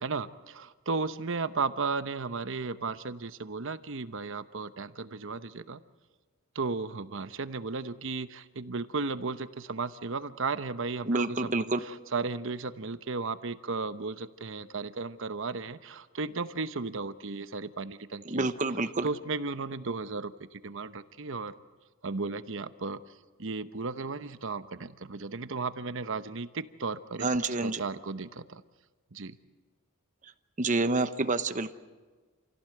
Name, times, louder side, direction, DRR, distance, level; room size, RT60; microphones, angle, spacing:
voice 1, 0.0-5.8 6.5-18.5 19.0-21.5 22.0-23.0 23.4-27.3 27.6-28.6 29.1-29.4, right 4 dB, 60° right, 12 dB, 0.9 m, -35 dB
voice 2, 11.1-11.8 18.3-19.1 27.2-27.8 30.6-31.7, right 3 dB, 35° right, 10 dB, 1.0 m, -28 dB
28.0 x 16.5 x 7.9 m, 1.4 s
head